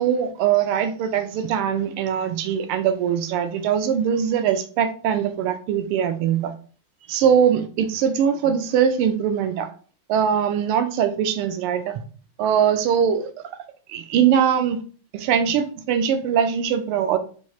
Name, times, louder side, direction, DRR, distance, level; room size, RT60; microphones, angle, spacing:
voice 1, 0.0-6.5 7.1-9.7 10.1-12.0 12.4-13.3 13.9-14.8 15.1-17.2, right 8 dB, 85° right, 9 dB, 1.5 m, -21 dB
4.6 x 2.3 x 4.1 m, 0.40 s
omnidirectional pair, 2.4 m